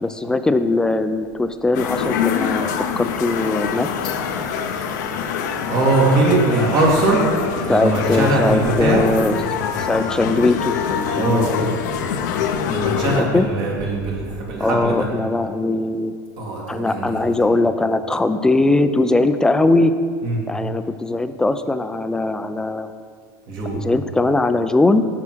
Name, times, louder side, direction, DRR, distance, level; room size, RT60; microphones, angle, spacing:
voice 1, 0.0-3.9 7.7-9.3 9.8-11.7 13.2-13.5 14.6-16.1 16.7-19.9 20.5-22.9 23.7-25.0, left 2 dB, 5° left, 10 dB, 0.3 m, -20 dB
sound 1, 1.7-13.2, left 7 dB, 80° left, 0.6 m, -24 dB
voice 2, 5.7-7.2 7.7-9.1 11.1-11.5 12.7-15.1 16.4-17.3 20.2-20.4 23.5-23.8, right 2 dB, 50° right, -2 dB, 2.1 m, -20 dB
7.3 x 6.0 x 4.6 m, 2.2 s
supercardioid pair, 115°, 10 cm